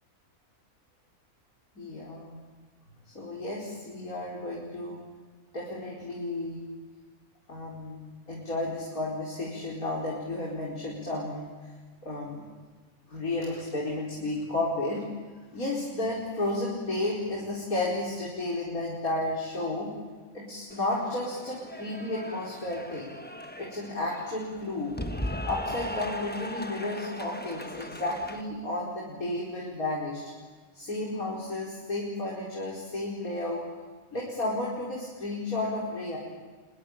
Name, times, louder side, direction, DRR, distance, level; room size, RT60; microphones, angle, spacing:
voice 1, 1.8-2.4 3.1-5.0 5.5-6.6 7.5-11.5 12.0-12.4 13.1-15.0 15.5-19.9 20.3-23.1 23.6-24.9 25.3-30.3 30.7-33.6 34.1-36.2, left 2 dB, 90° left, -4 dB, 5.4 m, -32 dB
Cheering / Applause, 20.7-28.4, left 1 dB, 5° left, 1.2 m, -38 dB
26.0 x 22.5 x 8.9 m, 1.5 s
omnidirectional pair, 1.5 m